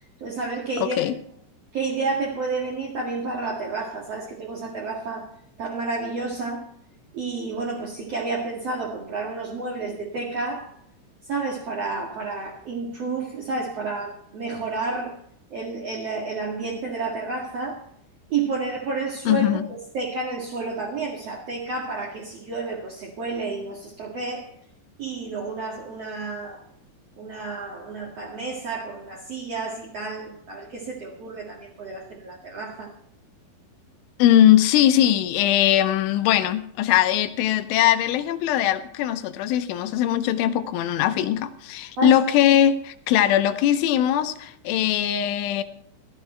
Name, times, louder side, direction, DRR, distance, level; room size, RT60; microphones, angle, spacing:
voice 1, 0.2-1.0 1.7-5.3 5.6-6.7 7.1-10.7 11.3-15.1 15.5-17.8 18.3-24.5 25.0-26.6 27.2-32.9 42.0-42.2, right 3 dB, 50° right, -3 dB, 2.0 m, -30 dB
voice 2, 0.8-1.1 19.3-19.7 34.2-45.6, left 11 dB, 80° left, 9 dB, 3.2 m, -20 dB
16.0 x 12.5 x 4.4 m, 0.69 s
omnidirectional pair, 5.5 m